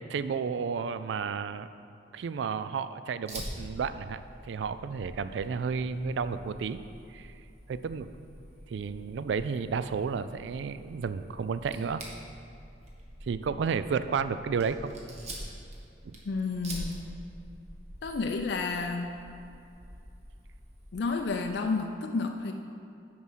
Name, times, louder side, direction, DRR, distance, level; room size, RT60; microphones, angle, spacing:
voice 1, 0.1-1.7 2.1-6.8 7.1-7.3 7.7-8.1 8.7-12.0 13.2-14.9 16.0-16.1, right 5 dB, 75° right, 12 dB, 0.3 m, -32 dB
Fire, 3.3-21.5, right 1 dB, 40° right, 1.3 m, -46 dB
voice 2, 16.3-17.0 18.0-19.1 20.9-22.5, left 4 dB, 65° left, 4 dB, 0.4 m, -30 dB
9.6 x 4.8 x 5.6 m, 2.7 s
head